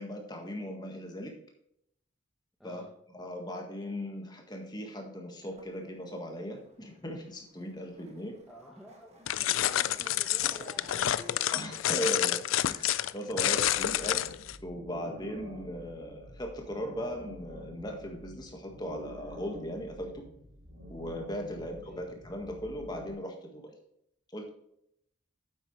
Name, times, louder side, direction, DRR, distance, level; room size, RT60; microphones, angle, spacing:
voice 1, 0.0-1.3 2.6-2.8 3.1-8.4 11.5-12.4 12.6-14.2 14.6-20.2 20.9-23.7 24.3-24.5, equal, 20° left, 2 dB, 1.7 m, -38 dB
voice 2, 2.6-2.9 8.5-11.4 13.9-14.3 21.6-22.1, equal, ahead, -2 dB, 1.0 m, -51 dB
sound 1, 5.4-11.7, right 1 dB, 30° right, 1.5 m, -55 dB
sound 2, 9.3-14.6, left 12 dB, 80° left, 0.4 m, -29 dB
sound 3, 13.3-23.1, equal, 75° right, 2.5 m, -48 dB
9.5 x 7.8 x 3.2 m, 0.73 s
head